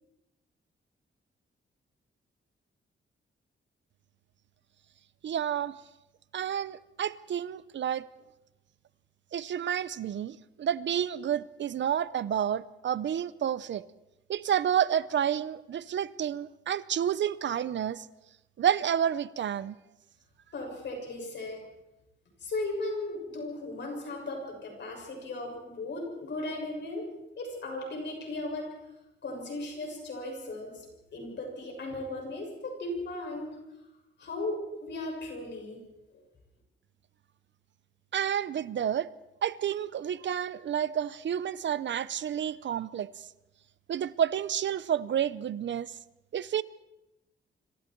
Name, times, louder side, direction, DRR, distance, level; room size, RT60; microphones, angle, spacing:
voice 1, 5.2-5.7 6.3-8.1 9.3-13.9 14.3-18.1 18.6-19.8 38.1-39.1 39.4-43.3 43.9-46.0 46.3-46.6, right 9 dB, 60° right, 0.7 m, -30 dB
voice 2, 20.5-21.6 22.4-28.7 29.2-30.9 31.1-33.6 34.2-35.8 36.1-36.2, left 2 dB, 55° left, 6.9 m, -36 dB
27.0 x 25.5 x 4.6 m
wide cardioid pair, 170°, 21 cm